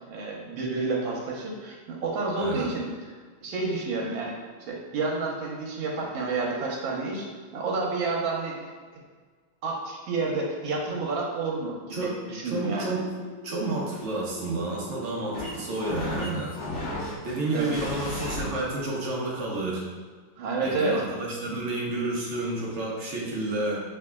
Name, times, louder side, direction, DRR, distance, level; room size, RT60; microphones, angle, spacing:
voice 1, 0.1-2.9 3.4-7.3 7.5-8.6 9.6-12.9 17.5-17.7 20.4-21.0, right 3 dB, 85° right, -1 dB, 1.6 m, -29 dB
voice 2, 2.4-2.7 11.9-12.1 12.4-13.0 13.4-16.5 17.2-19.8 20.6-23.8, right 2 dB, 50° right, -4 dB, 1.0 m, -30 dB
sound 1, 12.5-18.4, left 2 dB, 55° left, 1.5 m, -36 dB
6.1 x 3.3 x 2.2 m, 1.5 s
omnidirectional pair, 2.1 m